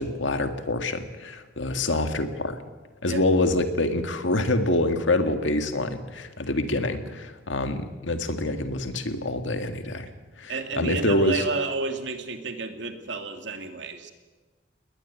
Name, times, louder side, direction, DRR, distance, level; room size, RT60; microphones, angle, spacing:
voice 1, 0.0-2.6 3.0-10.1 10.4-11.4, left 2 dB, 80° left, 7 dB, 1.9 m, -26 dB
voice 2, 10.5-14.1, right 3 dB, 70° right, 6 dB, 2.4 m, -31 dB
20.0 x 19.5 x 8.3 m, 1.3 s
head